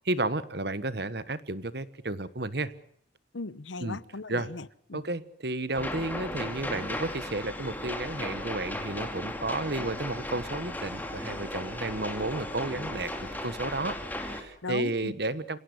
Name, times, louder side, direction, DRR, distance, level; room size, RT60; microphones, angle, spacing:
voice 1, 0.0-2.7 3.8-4.0 4.3-4.5 4.9-15.6, right 2 dB, 60° right, 15 dB, 1.4 m, -32 dB
voice 2, 3.3-5.0 14.6-15.1, left 3 dB, 90° left, 18 dB, 0.9 m, -37 dB
sound 1, 5.7-14.4, left 1 dB, 10° left, 2.7 m, -36 dB
27.5 x 18.0 x 8.0 m, 0.65 s
head